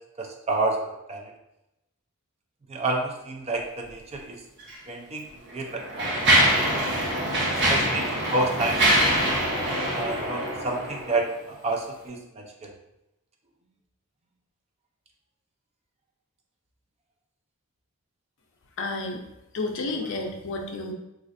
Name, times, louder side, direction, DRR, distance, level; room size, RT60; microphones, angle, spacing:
voice 1, 0.2-1.3 2.7-4.4 4.9-6.2 7.5-8.8 9.1-9.3 9.9-12.7, right 2 dB, 30° right, 1 dB, 0.4 m, -30 dB
Mechanisms, 4.6-4.8 5.5-11.2, right 1 dB, 50° right, 0.8 m, -24 dB
voice 2, 18.8-19.2 19.5-20.9, left 2 dB, 60° left, 3 dB, 0.5 m, -31 dB
4.1 x 2.4 x 2.5 m, 0.90 s
head